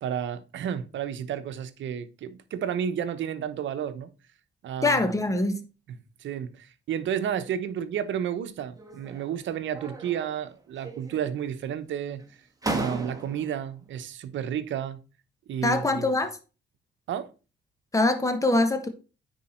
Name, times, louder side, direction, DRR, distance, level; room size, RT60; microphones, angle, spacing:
voice 1, 0.0-4.1 4.6-5.1 5.9-12.2 12.7-15.0 15.5-16.1 17.1-17.3, right 9 dB, 70° right, 1.0 m, -31 dB
voice 2, 4.8-5.6 15.6-16.4 17.9-18.9, left 2 dB, 15° left, 1.4 m, -23 dB
sound 1, 8.8-9.4 9.7-10.5 10.8-11.6 12.2-12.3 12.6-13.6, right 2 dB, 20° right, 1.8 m, -35 dB
9.5 x 4.7 x 4.4 m
cardioid pair, 90°, 20 cm